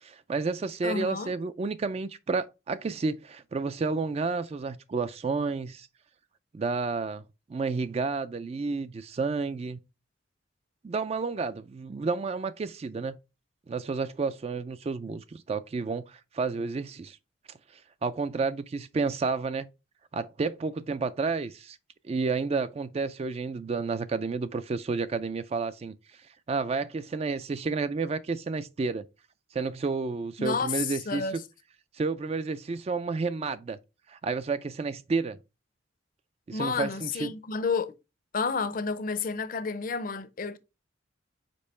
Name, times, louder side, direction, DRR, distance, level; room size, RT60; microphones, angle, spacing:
voice 1, 0.0-5.9 6.5-7.2 7.5-9.8 10.8-13.1 13.7-17.2 17.7-19.7 20.1-21.8 22.0-25.9 26.5-29.0 29.5-31.4 31.9-33.8 34.1-35.4 36.5-37.3, right 4 dB, 30° right, 0.3 m, -31 dB
voice 2, 0.8-1.3 30.4-31.4 36.5-37.9 38.3-40.6, left 5 dB, 45° left, 0.6 m, -30 dB
5.3 x 4.5 x 4.2 m
head